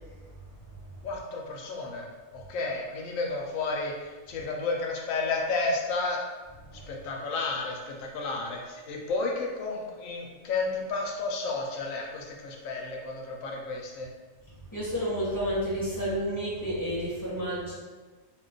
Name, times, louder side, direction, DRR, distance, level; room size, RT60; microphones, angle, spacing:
voice 1, 1.0-6.2 6.9-14.1, left 3 dB, 80° left, 0 dB, 1.0 m, -32 dB
voice 2, 14.7-17.7, equal, 15° left, -10 dB, 1.3 m, -31 dB
2.5 x 2.3 x 3.8 m, 1.3 s
omnidirectional pair, 1.4 m